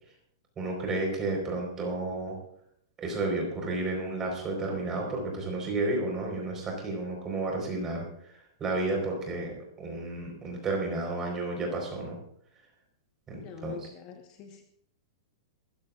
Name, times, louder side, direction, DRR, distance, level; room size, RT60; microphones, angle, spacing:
voice 1, 0.6-2.4 3.0-12.2 13.3-13.9, right 2 dB, 15° right, 1 dB, 4.5 m, -32 dB
voice 2, 13.4-14.6, left 6 dB, 35° left, 4 dB, 1.3 m, -44 dB
20.5 x 14.0 x 2.5 m, 0.68 s
supercardioid pair, 160°, 2 cm